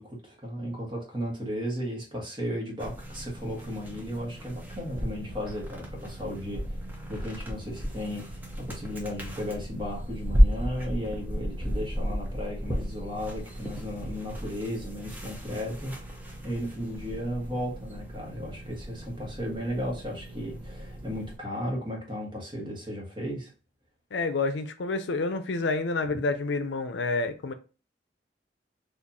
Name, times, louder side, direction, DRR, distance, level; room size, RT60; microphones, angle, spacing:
voice 1, 0.0-6.8 7.1-15.9 16.4-23.5, equal, 25° right, 1.3 m, -35 dB
sound 1, 2.8-21.4, equal, 10° right, 0.7 m, -33 dB
voice 2, 24.1-27.5, left 3 dB, 80° left, 0.5 m, -28 dB
4.4 x 2.6 x 2.6 m
head